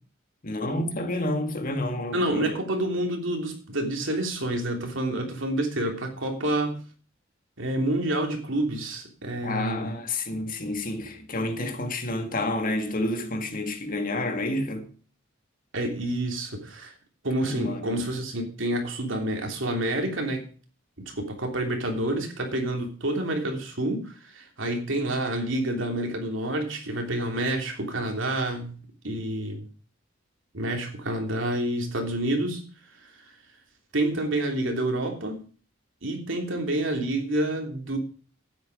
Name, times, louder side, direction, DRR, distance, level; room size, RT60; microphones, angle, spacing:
voice 1, 0.4-2.6 9.4-14.9 17.4-18.0, left 1 dB, 45° left, 2.0 m, -29 dB
voice 2, 2.1-6.8 7.6-9.9 15.7-16.9 17.2-20.4 21.0-28.8 29.0-29.6 30.5-32.6 33.9-35.4 36.0-38.0, right 1 dB, 65° right, 3.2 m, -28 dB
12.5 x 9.6 x 4.8 m
head